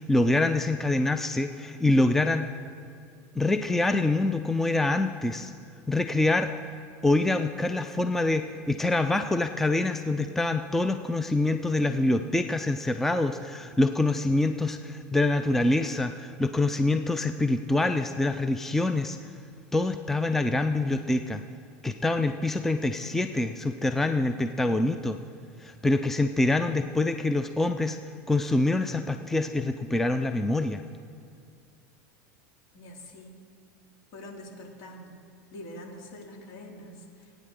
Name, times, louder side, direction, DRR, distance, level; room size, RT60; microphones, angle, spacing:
voice 1, 0.0-2.5 3.4-5.5 5.9-6.5 7.0-19.2 19.7-21.4 21.8-25.2 25.6-28.0 28.3-30.8, left 2 dB, 5° left, 8 dB, 0.4 m, -25 dB
voice 2, 32.7-33.4 34.1-35.2 35.5-37.4, left 1 dB, 55° left, 0 dB, 2.6 m, -44 dB
19.5 x 9.2 x 3.7 m, 2.4 s
supercardioid pair, 120°, 9 cm